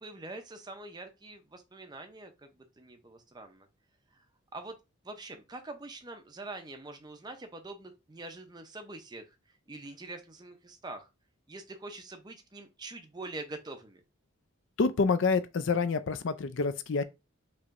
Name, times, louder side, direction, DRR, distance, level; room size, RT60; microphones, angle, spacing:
voice 1, 0.0-3.7 4.1-4.2 4.5-4.8 5.0-9.4 9.7-11.1 11.5-14.0, right 2 dB, 20° right, 0.5 m, -44 dB
voice 2, 14.8-17.0, left 4 dB, 55° left, 0.4 m, -27 dB
4.5 x 3.0 x 2.5 m
head